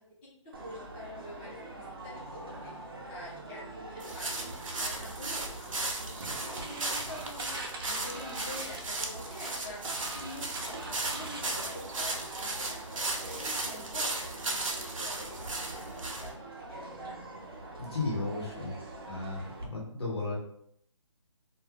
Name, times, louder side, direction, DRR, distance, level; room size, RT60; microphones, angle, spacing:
voice 1, 0.2-2.7 3.1-9.8 10.1-12.1 12.4-13.0 13.3-15.7 15.9-16.3 16.7-17.2, left 1 dB, 20° left, -10 dB, 0.9 m, -47 dB
sound 1, 0.5-19.6, right 2 dB, 45° right, 0.6 m, -44 dB
sound 2, 4.0-16.3, right 2 dB, 90° right, 0.7 m, -36 dB
voice 2, 17.8-18.7 19.1-20.4, left 3 dB, 55° left, -3 dB, 1.0 m, -34 dB
2.4 x 2.3 x 3.3 m, 0.70 s
hypercardioid pair, 170°, 16 cm